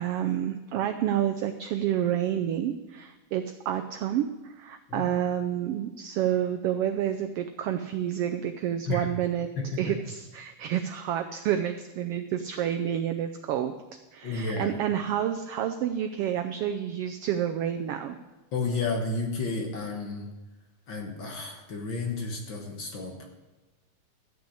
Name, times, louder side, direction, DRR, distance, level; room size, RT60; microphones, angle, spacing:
voice 1, 0.0-9.5 9.8-13.7 14.1-18.2, right 10 dB, 85° right, 7 dB, 1.3 m, -29 dB
voice 2, 9.6-9.9 14.2-14.8 18.5-20.3 20.9-23.3, left 3 dB, 55° left, 2 dB, 1.6 m, -32 dB
13.0 x 6.1 x 8.4 m, 1.1 s
omnidirectional pair, 3.3 m